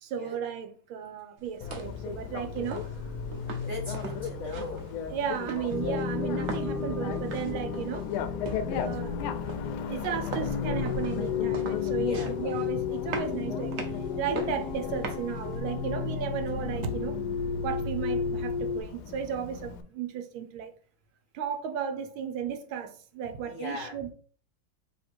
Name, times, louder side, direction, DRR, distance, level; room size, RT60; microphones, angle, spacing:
voice 1, 0.0-2.9 5.1-8.1 8.8-9.2 9.9-17.2 17.6-20.7 21.3-24.1, right 8 dB, 80° right, 1.5 m, -34 dB
sound 1, 1.4-15.6, right 4 dB, 60° right, 0.9 m, -42 dB
Bicycle, 1.6-19.8, left 7 dB, 85° left, 1.4 m, -37 dB
voice 2, 3.6-4.9 12.0-12.3 23.4-24.0, left 1 dB, 30° left, 1.0 m, -39 dB
sound 2, 5.7-18.8, left 6 dB, 70° left, 1.0 m, -33 dB
3.7 x 3.4 x 4.3 m
omnidirectional pair, 2.2 m